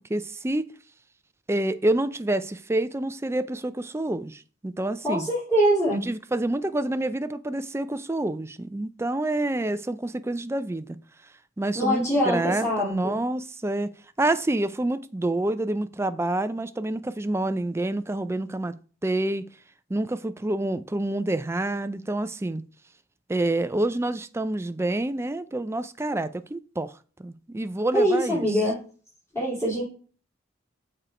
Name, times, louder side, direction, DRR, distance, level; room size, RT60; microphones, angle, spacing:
voice 1, 0.1-0.7 1.5-5.3 6.0-11.0 11.6-13.9 14.2-18.7 19.0-19.4 19.9-22.6 23.3-26.9 27.2-28.6, right 1 dB, 15° right, 0.4 m, -27 dB
voice 2, 5.0-6.0 11.8-13.2 27.9-28.8 29.3-29.8, equal, 15° left, 3.5 m, -23 dB
6.9 x 4.4 x 4.9 m
head